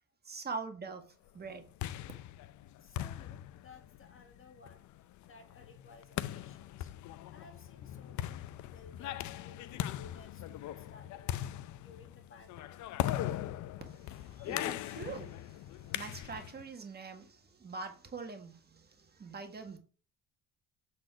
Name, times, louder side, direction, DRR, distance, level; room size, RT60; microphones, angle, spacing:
voice 1, 0.2-1.0 1.3-1.6 14.0-19.8, right 4 dB, 30° right, 1.6 m, -44 dB
sound 1, 1.4-16.6, left 13 dB, 60° left, 0.6 m, -40 dB
voice 2, 2.8-4.9 5.2-6.9 7.3-12.8, left 4 dB, 40° left, 1.9 m, -58 dB
7.6 x 4.3 x 4.9 m
cardioid pair, 95°, 33 cm